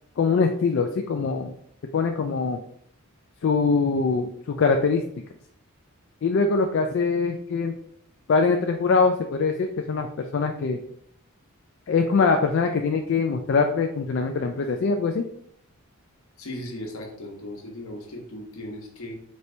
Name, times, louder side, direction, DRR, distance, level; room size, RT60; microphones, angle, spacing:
voice 1, 0.2-1.5 1.9-2.6 3.4-5.0 6.2-7.7 8.3-10.8 11.9-15.3, left 4 dB, 55° left, 4 dB, 0.3 m, -23 dB
voice 2, 16.4-19.2, left 1 dB, 75° left, 0 dB, 1.0 m, -37 dB
4.2 x 2.6 x 3.3 m, 0.66 s
head